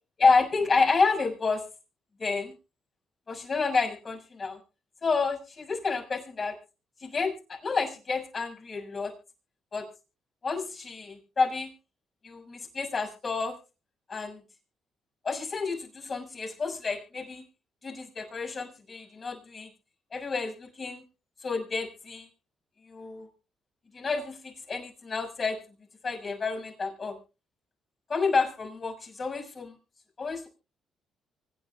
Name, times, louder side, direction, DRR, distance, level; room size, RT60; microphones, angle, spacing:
voice 1, 0.2-1.6 2.2-2.5 3.3-4.6 5.0-6.5 7.0-9.1 9.7-9.9 10.4-11.7 12.2-13.5 14.1-14.4 15.2-17.4 17.8-19.7 20.1-21.0 21.4-22.3 22.9-23.3 23.9-25.6 26.0-27.2 28.1-29.7 30.2-30.5, left 4 dB, 40° left, 2 dB, 6.5 m, -29 dB
25.0 x 10.5 x 2.4 m, 0.31 s
cardioid pair, 90°, 0 cm